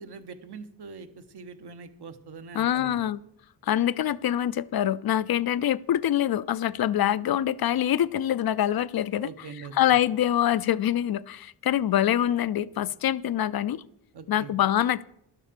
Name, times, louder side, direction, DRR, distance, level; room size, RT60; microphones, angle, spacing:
voice 1, 0.0-3.0 9.2-10.0 14.1-14.5, right 5 dB, 65° right, 1.1 m, -43 dB
voice 2, 2.5-3.2 3.6-9.3 9.7-13.8 14.3-15.0, left 11 dB, 55° left, 0.5 m, -25 dB
12.0 x 7.4 x 6.7 m
wide cardioid pair, 130°, 43 cm